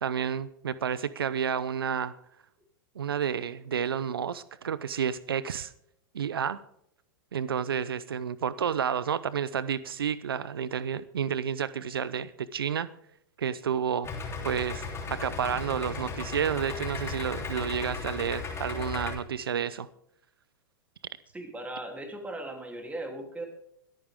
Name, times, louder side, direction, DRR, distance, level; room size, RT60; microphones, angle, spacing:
voice 1, 0.0-2.2 3.0-5.7 6.1-6.6 7.3-12.9 13.4-19.9, right 8 dB, 90° right, 18 dB, 0.5 m, -30 dB
Idling, 14.0-19.1, left 4 dB, 20° left, 3.2 m, -36 dB
voice 2, 21.3-23.5, right 1 dB, 10° right, 4 dB, 3.1 m, -38 dB
23.5 x 9.0 x 3.6 m, 0.73 s
hypercardioid pair, 110°, 12 cm